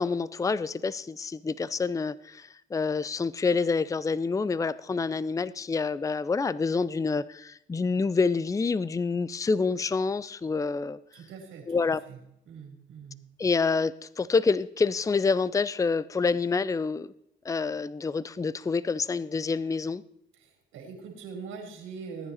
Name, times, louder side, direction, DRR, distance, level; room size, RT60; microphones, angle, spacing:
voice 1, 0.0-11.0 11.7-12.0 13.4-17.1 17.4-20.0, left 4 dB, 15° left, 0.5 m, -27 dB
voice 2, 11.1-11.8 12.1-12.2 12.5-13.3 20.3-22.3, right 5 dB, 90° right, 3.8 m, -42 dB
19.0 x 9.8 x 4.2 m
cardioid pair, 90°, 20 cm